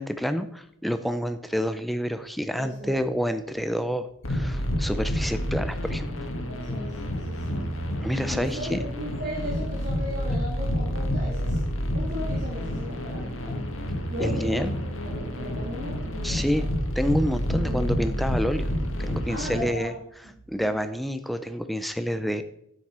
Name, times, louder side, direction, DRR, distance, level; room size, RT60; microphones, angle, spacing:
voice 1, 0.0-6.1 8.0-8.8 14.2-14.7 16.2-16.7 17.0-18.7 19.0-19.9 20.5-22.4, equal, ahead, 10 dB, 0.5 m, -28 dB
voice 2, 2.6-3.0 6.5-7.6 8.1-11.6 11.9-13.6 14.1-14.7 15.0-16.6 17.6-18.2 19.2-19.9 20.6-20.7, left 1 dB, 50° right, -5 dB, 2.1 m, -36 dB
sound 1, 4.2-19.6, equal, 65° left, 1.5 m, -29 dB
9.7 x 7.4 x 4.3 m, 0.75 s
head